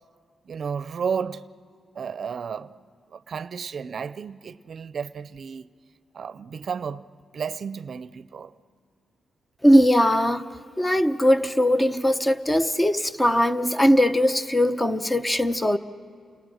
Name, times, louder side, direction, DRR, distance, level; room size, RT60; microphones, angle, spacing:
voice 1, 0.4-1.5 1.9-2.8 3.1-5.7 6.1-7.1 7.3-8.5, right 6 dB, 55° right, 0.6 m, -32 dB
voice 2, 9.6-15.8, equal, 15° left, 0.9 m, -20 dB
29.5 x 28.0 x 6.4 m
cardioid pair, 100°, 0 cm